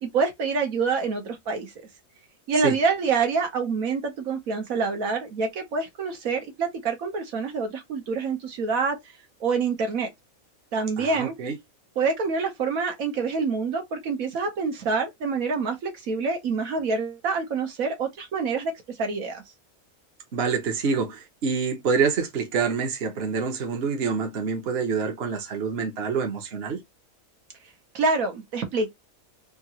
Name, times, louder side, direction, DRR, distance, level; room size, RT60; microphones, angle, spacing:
voice 1, 0.0-1.7 2.5-9.0 9.4-10.1 10.7-11.3 12.0-18.7 19.0-19.4 27.9-28.9, right 4 dB, 75° right, 1.5 m, -26 dB
voice 2, 11.0-11.6 20.3-26.8, right 5 dB, 50° right, 1.1 m, -26 dB
3.7 x 2.4 x 2.9 m
omnidirectional pair, 1.5 m